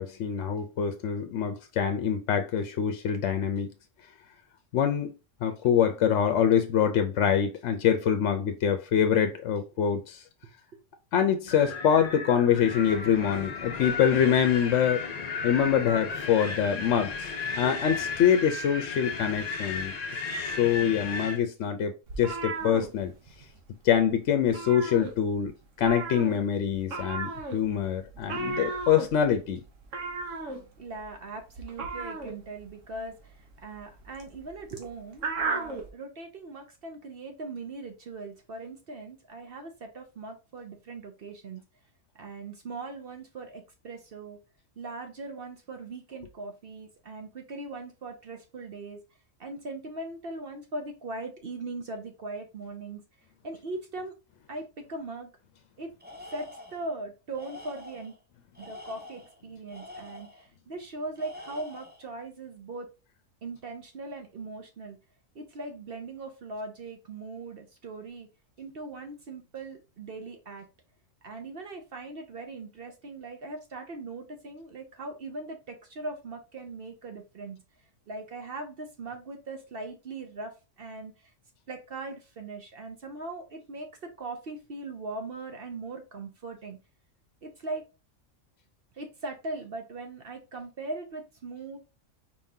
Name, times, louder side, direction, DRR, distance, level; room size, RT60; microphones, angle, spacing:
voice 1, 0.0-3.7 4.7-5.1 5.4-10.2 11.1-15.0 15.4-17.3 17.6-19.9 20.4-23.1 23.8-25.5 25.8-29.6, left 8 dB, 70° left, 0.9 m, -25 dB
Wind, 11.5-21.4, left 4 dB, 45° left, 0.6 m, -34 dB
sound 1, 22.1-23.6 23.8-24.1 24.4-25.5 25.8-35.9, right 3 dB, 70° right, 1.3 m, -35 dB
voice 2, 30.8-41.6 42.1-44.4 44.8-49.0 49.4-53.0 53.4-54.1 54.5-55.3 55.8-55.9 56.3-58.1 58.6-62.9 63.4-65.0 65.3-68.3 68.6-70.7 71.2-77.6 78.1-81.3 81.7-86.8 87.4-87.8 88.9-91.8, right 2 dB, 55° right, 0.8 m, -40 dB
Tools, 56.0-56.9 57.3-58.2 58.5-60.5 61.1-62.1, left 2 dB, 10° right, 0.5 m, -46 dB
4.7 x 3.6 x 2.7 m
omnidirectional pair, 1.3 m